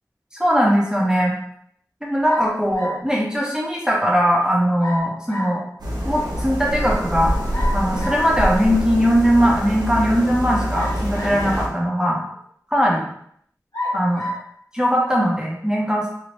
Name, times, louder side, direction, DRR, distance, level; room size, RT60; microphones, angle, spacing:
voice 1, 0.4-1.3 2.0-5.6 6.0-7.4 7.7-12.2 12.7-13.1 13.9-14.2 14.7-16.1, equal, 10° right, -3 dB, 0.7 m, -20 dB
sound 1, 2.2-3.1 4.8-5.6 7.5-8.3 10.7-11.6 12.3-12.4 13.7-14.5, left 1 dB, 85° left, 1.2 m, -29 dB
sound 2, 5.8-11.7, equal, 90° right, 0.6 m, -25 dB
3.0 x 2.0 x 2.9 m, 0.67 s
wide cardioid pair, 45°, 7 cm